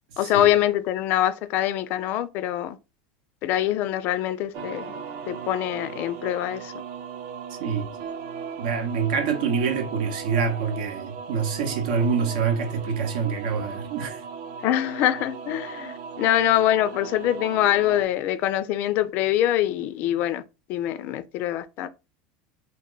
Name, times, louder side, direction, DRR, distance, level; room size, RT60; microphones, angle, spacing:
voice 1, 0.2-2.8 3.4-4.8 5.3-6.7 14.6-20.4 20.7-21.9, left 12 dB, 45° left, 0.3 m, -24 dB
sound 1, 4.5-18.0, right 6 dB, 55° right, 0.5 m, -37 dB
voice 2, 7.6-7.9 8.6-14.2, right 6 dB, 75° right, 0.8 m, -26 dB
2.9 x 2.2 x 3.7 m
supercardioid pair, 145°, 4 cm